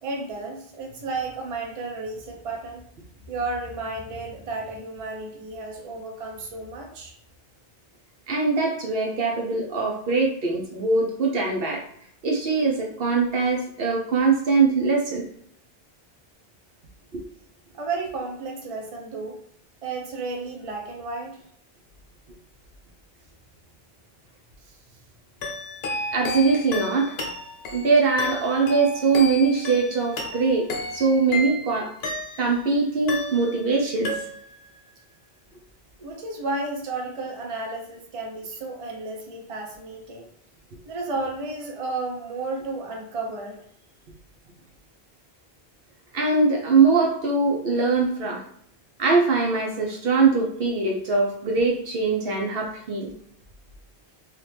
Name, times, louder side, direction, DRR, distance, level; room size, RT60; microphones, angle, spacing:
voice 1, 0.0-2.8 3.3-7.1 17.7-19.4 19.8-21.4 36.0-40.3 40.9-43.6, right 3 dB, 40° right, 1 dB, 0.6 m, -32 dB
voice 2, 8.3-11.8 12.2-15.2 17.1-17.2 26.1-27.2 27.7-30.7 30.9-31.9 32.4-34.1 46.1-48.4 49.0-53.1, right 4 dB, 70° right, 1 dB, 0.8 m, -22 dB
sound 1, 25.4-32.7 33.1-33.8 34.0-34.7, left 2 dB, 75° left, 0.9 m, -33 dB
2.8 x 2.4 x 3.3 m, 0.68 s
omnidirectional pair, 1.0 m